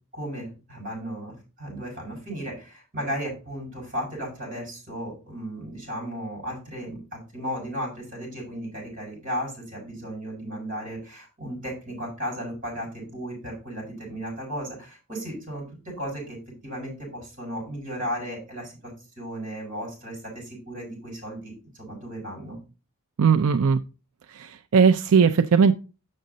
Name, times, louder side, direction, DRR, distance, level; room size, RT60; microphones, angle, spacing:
voice 1, 0.1-16.4 16.6-18.9 19.2-22.6, equal, 35° right, -1 dB, 5.2 m, -35 dB
voice 2, 23.2-23.8 24.3-25.7, right 6 dB, 70° right, 8 dB, 0.4 m, -19 dB
7.6 x 6.4 x 4.0 m, 0.33 s
head